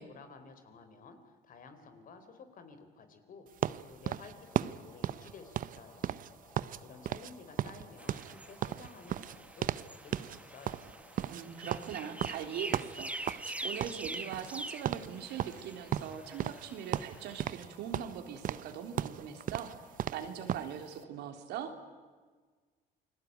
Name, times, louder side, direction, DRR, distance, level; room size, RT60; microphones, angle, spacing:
voice 1, 0.0-3.5 3.8-6.3 6.6-11.0, left 5 dB, 55° left, 9 dB, 4.0 m, -53 dB
sound 1, 3.6-6.8 7.1-7.3 7.6-9.9 10.1-10.4 10.7-13.5 13.8-14.6 14.8-15.1 15.4-16.7 16.9-17.7 17.9-20.7, right 11 dB, 55° right, 0.8 m, -35 dB
sound 2, 4.3-20.0, left 3 dB, 30° left, 4.7 m, -60 dB
sound 3, 8.0-17.5, right 1 dB, 10° right, 1.2 m, -45 dB
voice 2, 11.3-19.7 20.1-21.7, right 8 dB, 85° right, 6 dB, 3.4 m, -41 dB
29.0 x 21.0 x 9.4 m, 1.4 s
cardioid pair, 110°, 17 cm